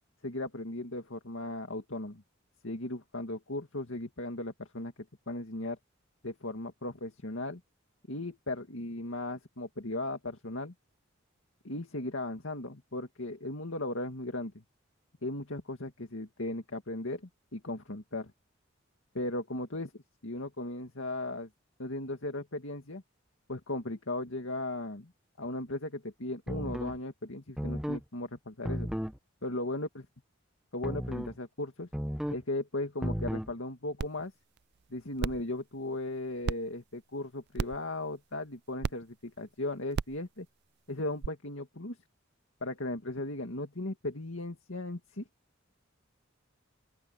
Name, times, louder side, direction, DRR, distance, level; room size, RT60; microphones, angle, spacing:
voice 1, 0.2-2.2 2.6-4.9 5.3-5.8 6.2-7.6 8.1-10.7 11.6-14.6 15.2-18.3 19.1-19.9 20.2-21.5 21.8-23.0 23.5-25.1 25.4-28.9 29.4-30.0 30.7-31.9 32.3-34.3 34.9-40.5 40.9-42.0 42.6-45.2, left 2 dB, 70° left, 2.2 m, -37 dB
sound 1, 26.5-27.0 27.6-28.0 28.6-29.2 30.8-31.4 31.9-32.4 33.0-33.5, equal, 5° right, 0.8 m, -34 dB
sound 2, 34.0-34.1 34.6-34.7 35.2-35.4 36.5-36.6 37.6-37.8 38.8-38.9 39.9-40.2 41.2-41.3, right 5 dB, 55° right, 0.4 m, -31 dB
open air
head